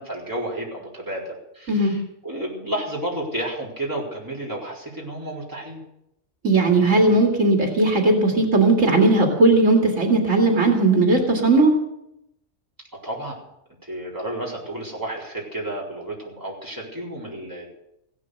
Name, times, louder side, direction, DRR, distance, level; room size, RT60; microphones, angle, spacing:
voice 1, 0.0-5.8 13.0-13.4 13.8-17.7, right 1 dB, 15° right, -3 dB, 4.2 m, -31 dB
voice 2, 6.4-11.7, right 2 dB, 80° right, 2 dB, 2.8 m, -17 dB
16.0 x 12.0 x 6.6 m, 0.82 s
omnidirectional pair, 1.3 m